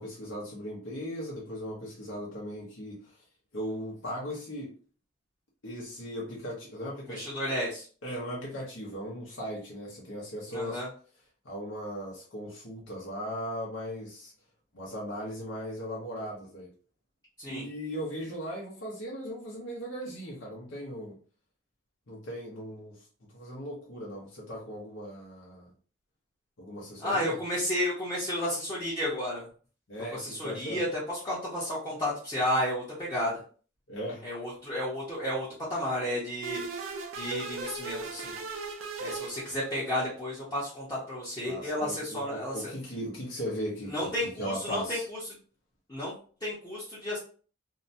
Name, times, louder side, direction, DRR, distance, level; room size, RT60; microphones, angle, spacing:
voice 1, 0.0-3.2 3.5-4.8 5.6-7.3 8.0-10.8 11.4-14.3 14.7-16.7 17.5-21.2 22.1-23.0 23.3-25.7 26.6-27.4 29.9-30.8 33.9-34.2 41.4-45.1, equal, 70° left, -4 dB, 0.9 m, -38 dB
voice 2, 7.1-7.8 10.5-10.9 17.4-17.7 27.0-29.5 30.1-33.4 34.2-36.6 37.2-38.4 39.0-42.7 43.9-45.2 45.9-46.1 46.4-47.2, left 1 dB, 20° left, -8 dB, 0.9 m, -32 dB
sound 1, 36.4-40.0, right 4 dB, 90° right, 0.5 m, -38 dB
2.8 x 2.2 x 2.6 m, 0.41 s
head